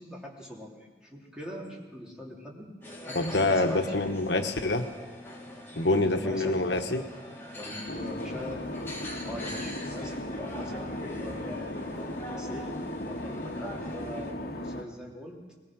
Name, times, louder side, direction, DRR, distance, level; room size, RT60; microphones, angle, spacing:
voice 1, 0.0-2.7 3.0-3.9 5.9-6.6 7.5-8.6 9.2-15.4, equal, 5° right, -3 dB, 3.1 m, -42 dB
sound 1, 2.8-14.3, left 1 dB, 15° left, 2.6 m, -42 dB
voice 2, 3.1-4.9 5.8-7.0, left 2 dB, 75° left, 6 dB, 1.3 m, -26 dB
sound 2, 7.9-14.8, left 1 dB, 60° left, 1.7 m, -37 dB
20.5 x 20.0 x 6.3 m, 1.3 s
head